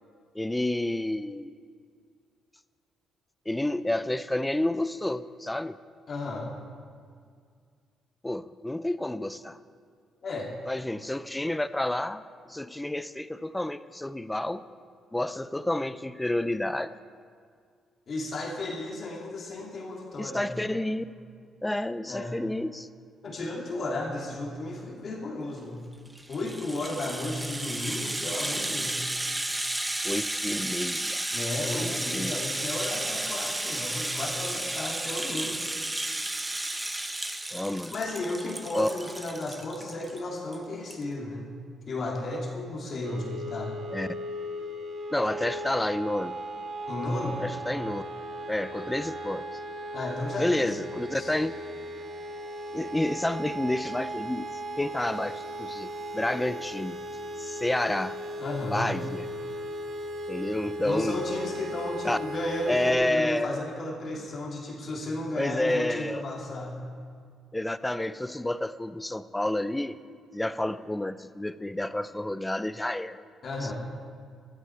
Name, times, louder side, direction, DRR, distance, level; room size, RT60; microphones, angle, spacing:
voice 1, 0.3-1.5 3.5-5.8 8.2-9.6 10.7-12.2 12.5-14.6 15.1-16.9 20.2-21.0 21.6-22.9 30.0-31.4 31.8-32.4 37.5-37.9 38.7-38.9 43.9-44.1 45.1-46.4 47.4-48.0 48.5-49.4 50.4-51.5 52.7-54.5 54.8-57.0 57.4-58.2 58.7-59.3 60.3-61.2 62.0-62.2 62.7-63.6 65.4-66.2 67.5-70.0 70.3-73.2 73.6-73.7, left 1 dB, 10° left, 14 dB, 0.5 m, -29 dB
voice 2, 6.1-6.5 10.2-10.5 18.1-20.6 22.1-22.4 23.2-25.8 26.3-29.0 31.3-35.7 37.9-41.5 41.9-43.7 46.9-47.4 49.9-50.7 51.1-51.3 58.4-58.9 60.8-66.8 73.4-73.7, left 2 dB, 50° left, -1 dB, 2.7 m, -34 dB
Rattle (instrument), 26.1-40.2 40.5-40.6 40.9-41.0, right 1 dB, 15° right, 0.9 m, -33 dB
sound 1, 43.0-62.9, equal, 65° right, 1.8 m, -37 dB
14.0 x 13.5 x 4.7 m, 2.1 s
cardioid pair, 90°, 0 cm